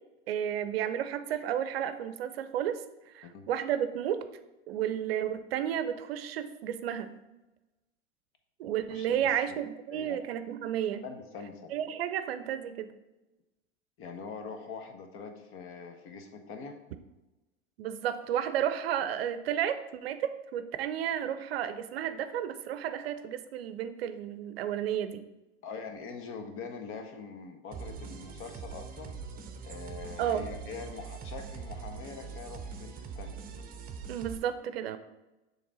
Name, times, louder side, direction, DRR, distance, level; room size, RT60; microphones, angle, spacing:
voice 1, 0.3-2.8 3.1-4.2 4.7-7.1 8.6-11.0 11.7-12.9 17.8-25.2 30.2-30.5 34.1-35.0, right 10 dB, 65° right, 11 dB, 0.6 m, -32 dB
voice 2, 8.9-9.3 9.9-10.2 11.0-11.8 14.0-16.8 25.6-29.2 29.6-33.4, left 5 dB, 40° left, 5 dB, 1.1 m, -43 dB
sound 1, 27.7-34.4, right 6 dB, 25° right, 0.8 m, -42 dB
7.0 x 3.4 x 4.9 m, 1.0 s
hypercardioid pair, 85°, 32 cm